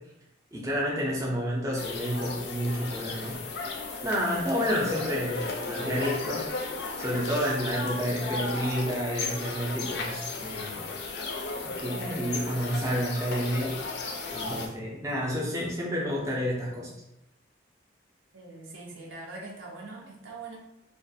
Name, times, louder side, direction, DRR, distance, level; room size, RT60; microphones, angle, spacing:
voice 1, 0.5-3.4 4.0-6.5 7.0-10.8 11.8-13.7 14.3-16.9, equal, 15° right, -4 dB, 0.4 m, -30 dB
sound 1, 1.8-14.7, left 3 dB, 60° left, 0.4 m, -35 dB
voice 2, 18.3-20.6, right 3 dB, 90° right, -1 dB, 0.6 m, -42 dB
2.3 x 2.3 x 2.7 m, 0.88 s
head